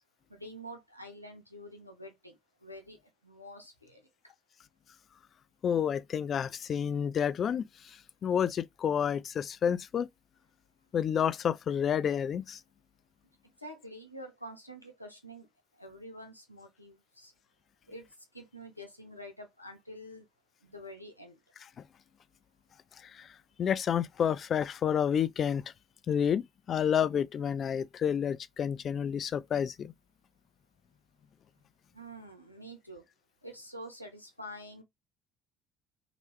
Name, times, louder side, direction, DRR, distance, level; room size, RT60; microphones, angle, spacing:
voice 1, 0.3-3.0 3.2-4.0 13.6-15.5 15.7-17.3 17.9-18.1 18.3-20.3 20.6-21.4 31.9-33.0 33.4-34.8, equal, 90° left, 0.8 m, -47 dB
voice 2, 5.6-10.1 10.9-12.6 23.0-23.3 23.6-25.6 26.1-29.9, left 8 dB, 40° left, 0.3 m, -30 dB
3.0 x 3.0 x 3.0 m
figure-of-eight pair, 55°, 0 cm